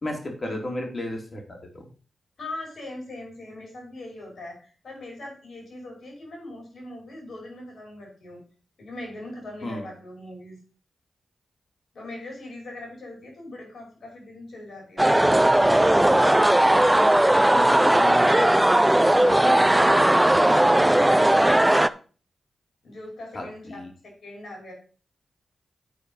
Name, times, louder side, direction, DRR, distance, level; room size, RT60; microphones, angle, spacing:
voice 1, 0.0-1.9 9.6-9.8 17.3-17.6 18.0-18.5 23.3-23.9, left 1 dB, 50° left, 1 dB, 3.0 m, -34 dB
voice 2, 2.4-8.4 8.8-10.6 11.9-15.5 17.6-18.5 19.2-21.8 22.8-24.7, left 1 dB, 70° left, -1 dB, 5.6 m, -40 dB
sound 1, 15.0-21.9, right 1 dB, 15° right, 0.5 m, -18 dB
9.3 x 4.8 x 5.5 m, 0.39 s
supercardioid pair, 40°, 0 cm